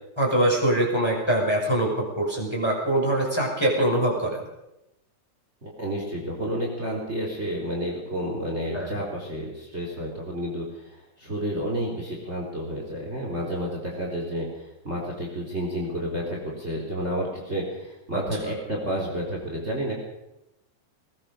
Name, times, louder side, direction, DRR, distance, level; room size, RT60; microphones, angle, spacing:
voice 1, 0.2-4.4 8.7-9.0 18.1-18.6, right 1 dB, 10° left, -1 dB, 5.6 m, -24 dB
voice 2, 5.6-19.9, equal, 20° right, -1 dB, 4.3 m, -30 dB
20.5 x 20.0 x 6.8 m, 0.89 s
omnidirectional pair, 3.4 m